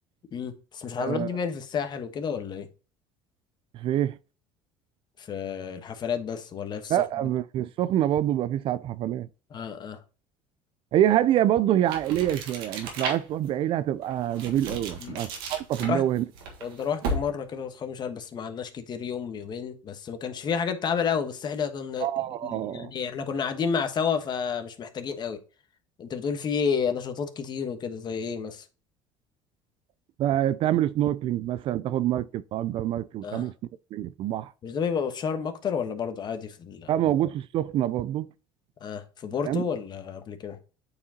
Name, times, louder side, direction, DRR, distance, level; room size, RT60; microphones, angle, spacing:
voice 1, 0.3-2.7 5.2-7.0 7.2-7.3 9.5-10.0 15.0-15.2 15.8-16.0 16.6-22.1 22.4-25.4 26.0-28.6 33.2-33.5 34.6-36.9 38.8-40.6, left 6 dB, 40° left, 1.1 m, -31 dB
voice 2, 1.0-1.3 3.7-4.2 6.9-9.3 10.9-16.2 22.0-22.9 30.2-33.5 33.9-34.5 36.9-38.3 39.5-39.6, right 12 dB, 50° right, 0.4 m, -26 dB
sound 1, 11.8-13.5 14.0-17.5, right 2 dB, 90° right, 1.5 m, -35 dB
8.4 x 4.8 x 2.8 m
supercardioid pair, 100°, 11 cm